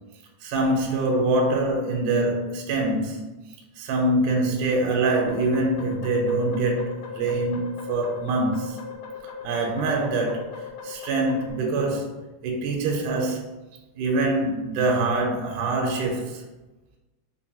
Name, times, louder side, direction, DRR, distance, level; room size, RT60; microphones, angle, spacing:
voice 1, 0.4-3.3 3.8-8.8 9.4-13.5 14.0-16.4, right 2 dB, 80° right, 2.0 m, -24 dB
sound 1, 5.3-11.5, left 6 dB, 75° left, 1.7 m, -39 dB
5.2 x 2.1 x 2.7 m
omnidirectional pair, 3.7 m